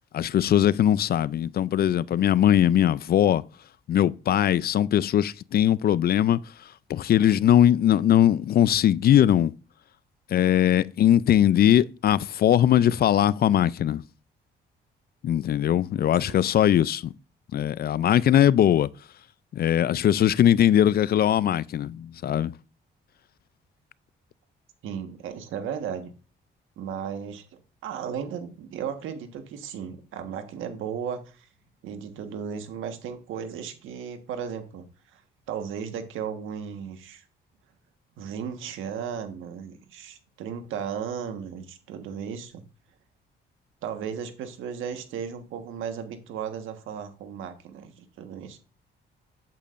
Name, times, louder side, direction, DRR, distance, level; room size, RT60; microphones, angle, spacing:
voice 1, 0.1-3.4 3.9-6.4 6.9-9.5 10.3-14.0 15.2-17.1 17.5-18.9 19.5-22.5, left 11 dB, 50° left, 0.4 m, -20 dB
voice 2, 24.8-26.1 26.8-27.4 27.8-31.5 31.8-34.9 35.1-35.2 35.5-37.2 38.2-42.6 43.8-48.6, right 7 dB, 85° right, 1.4 m, -35 dB
8.5 x 8.3 x 2.5 m
cardioid pair, 90°, 20 cm